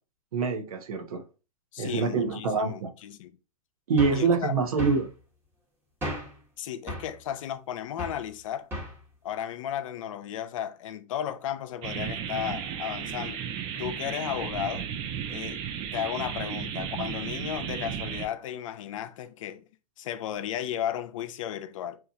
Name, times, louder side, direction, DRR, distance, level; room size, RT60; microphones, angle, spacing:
voice 1, 0.3-1.2 1.8-2.9 3.9-5.1, right 4 dB, 75° right, 0.8 m, -25 dB
voice 2, 1.7-3.3 4.1-4.5 6.6-8.7 9.2-13.4 13.8-14.9 15.3-15.6 15.9-19.6 20.0-22.0, left 10 dB, 60° left, 0.4 m, -34 dB
sound 1, 4.0-4.3 4.8-5.1 6.0-6.4 6.9-7.2 8.0-8.3 8.7-9.0, equal, 10° right, 1.1 m, -35 dB
sound 2, 11.8-18.3, right 8 dB, 30° right, 0.4 m, -34 dB
2.8 x 2.4 x 2.4 m
hypercardioid pair, 120°, 19 cm